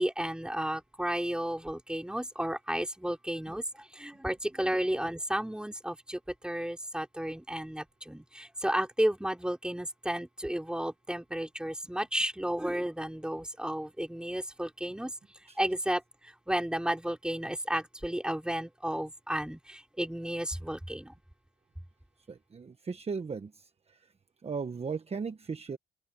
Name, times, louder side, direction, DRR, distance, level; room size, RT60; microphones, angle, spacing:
voice 1, 0.0-15.1 15.6-21.1, right 1 dB, 5° right, 4.0 m, -33 dB
voice 2, 22.3-24.0 24.4-25.8, right 5 dB, 30° right, 1.2 m, -37 dB
cardioid pair, 90°, 20 cm